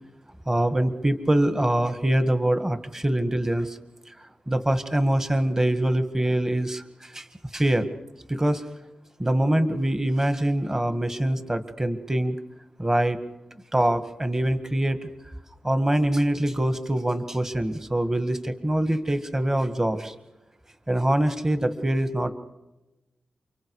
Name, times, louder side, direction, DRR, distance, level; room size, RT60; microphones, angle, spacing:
voice 1, 0.5-3.8 4.1-4.2 4.5-7.3 7.5-7.9 8.3-8.6 9.2-12.4 12.8-13.2 13.7-15.1 15.6-20.1 20.9-22.3, right 1 dB, 20° right, 10 dB, 1.8 m, -24 dB
29.0 x 25.0 x 4.9 m, 1.0 s
cardioid pair, 75°, 3 cm